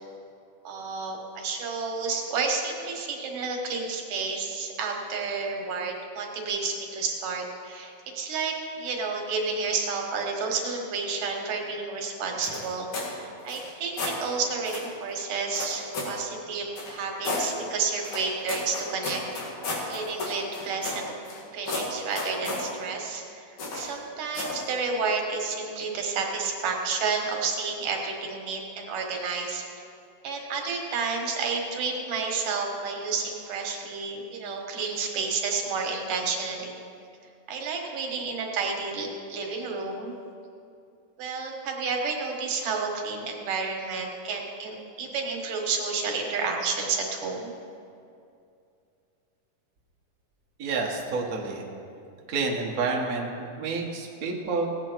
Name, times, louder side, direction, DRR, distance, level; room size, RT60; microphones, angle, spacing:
voice 1, 0.6-12.9 13.2-19.2 19.8-21.1 21.5-29.7 30.2-36.8 37.5-40.2 41.2-47.5, right 4 dB, 90° right, 1 dB, 3.0 m, -30 dB
sound 1, 12.4-13.1 13.4-14.2 14.6-14.9 15.5-16.2 16.8-17.5 18.0-21.4 21.7-22.7 23.6-23.9 24.3-24.6, left 2 dB, 70° left, 3.3 m, -33 dB
voice 2, 50.6-51.6 52.3-54.7, right 4 dB, 55° right, -1 dB, 0.9 m, -29 dB
17.0 x 8.7 x 4.5 m, 2.5 s
omnidirectional pair, 3.6 m